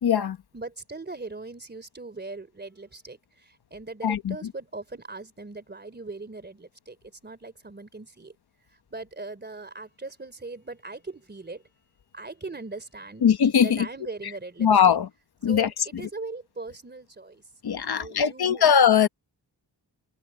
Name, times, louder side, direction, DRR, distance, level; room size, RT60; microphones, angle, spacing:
voice 1, 0.0-0.4 4.0-4.5 13.2-13.9 14.6-15.1 15.4-16.0 17.6-19.1, left 8 dB, 65° left, 1.2 m, -21 dB
voice 2, 0.5-7.0 7.2-8.3 8.9-11.6 12.1-13.2 13.6-15.0 15.4-17.4 17.8-18.6, right 3 dB, 25° right, 3.3 m, -40 dB
wide cardioid pair, 120°, 41 cm